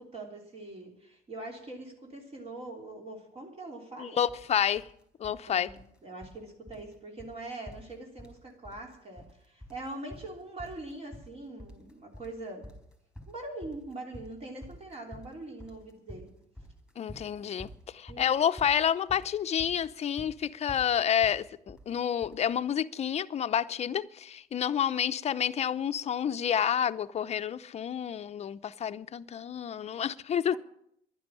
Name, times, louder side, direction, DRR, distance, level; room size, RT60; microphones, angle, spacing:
voice 1, 0.0-4.2 5.4-12.7 13.3-16.3 18.1-18.3 30.5-30.6, right 2 dB, 35° right, 3.2 m, -43 dB
voice 2, 4.0-4.9 5.2-5.7 17.0-30.6, left 9 dB, 40° left, 0.7 m, -29 dB
sound 1, 4.3-4.5 4.8-5.4 5.7-6.4 6.7-6.9 7.2-7.3 7.7-8.4 8.6-9.3 9.6-22.4, equal, 5° right, 4.4 m, -48 dB
11.5 x 10.5 x 9.7 m
cardioid pair, 110°, 17 cm